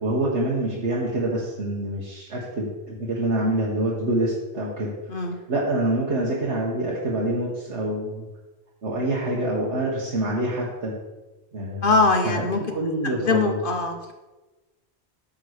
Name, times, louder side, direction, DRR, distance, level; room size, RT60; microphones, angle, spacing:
voice 1, 0.0-4.9 5.5-8.2 8.8-10.9 11.5-11.9 12.2-12.4 12.7-13.5, right 1 dB, 90° right, -5 dB, 1.6 m, -26 dB
voice 2, 11.8-12.6 13.2-13.9, left 3 dB, 55° left, 5 dB, 1.1 m, -21 dB
9.2 x 3.9 x 6.4 m, 1.1 s
omnidirectional pair, 1.1 m